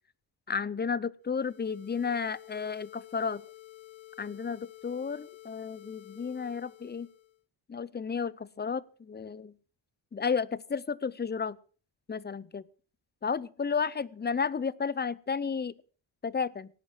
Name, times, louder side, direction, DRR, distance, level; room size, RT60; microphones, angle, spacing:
voice 1, 0.5-3.4 4.2-7.1 7.7-9.5 10.1-11.6 12.1-12.6 13.2-15.7 16.2-16.7, left 5 dB, 20° left, 21 dB, 0.7 m, -32 dB
sound 1, 1.2-7.4, left 15 dB, 75° left, 1.7 m, -51 dB
18.0 x 9.4 x 6.1 m, 0.39 s
cardioid pair, 110°, 47 cm